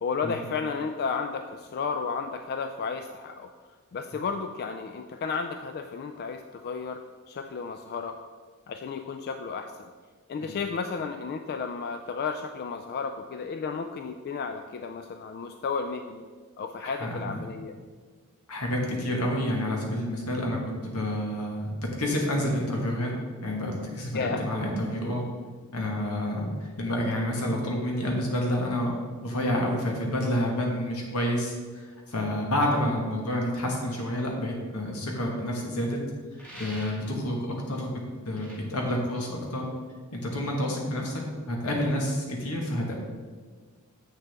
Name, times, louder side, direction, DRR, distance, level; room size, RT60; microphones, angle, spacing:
voice 1, 0.0-3.5 3.9-8.2 8.7-9.9 10.3-16.2 16.6-17.7 24.1-24.4, left 5 dB, 45° left, 7 dB, 0.3 m, -33 dB
voice 2, 16.8-17.5 18.5-23.1 23.4-25.2 25.7-28.9 29.2-36.0 36.5-37.9 38.2-39.7 40.1-41.2 41.5-42.9, left 1 dB, 80° left, 0 dB, 1.5 m, -29 dB
sound 1, 36.4-37.2 38.3-38.6, equal, 5° left, 1.7 m, -44 dB
7.5 x 6.6 x 3.4 m, 1.5 s
head